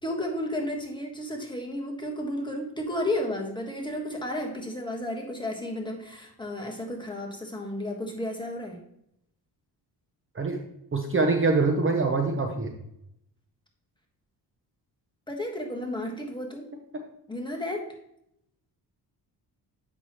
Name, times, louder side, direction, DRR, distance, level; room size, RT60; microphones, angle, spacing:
voice 1, 0.0-8.8 15.3-16.7 17.3-17.9, left 1 dB, 10° left, 1 dB, 1.4 m, -32 dB
voice 2, 10.9-12.7, right 3 dB, 30° right, 3 dB, 0.9 m, -24 dB
7.9 x 6.0 x 3.0 m, 0.77 s
cardioid pair, 100°, 41 cm